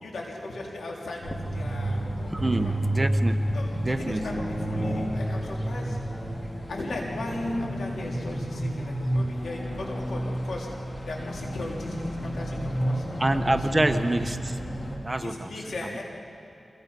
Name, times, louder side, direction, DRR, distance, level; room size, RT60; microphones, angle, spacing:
voice 1, 0.0-2.7 3.5-6.0 6.7-10.7 11.1-13.0 13.3-13.6 13.9-14.0 15.2-16.0, left 2 dB, 85° left, -2 dB, 3.3 m, -38 dB
sound 1, 1.2-15.0, equal, 30° left, 3.1 m, -30 dB
voice 2, 2.3-3.4 3.8-4.4 13.2-14.6 15.0-15.5, right 1 dB, 20° right, 8 dB, 1.1 m, -26 dB
26.5 x 21.5 x 5.5 m, 2.7 s
cardioid pair, 55°, 0 cm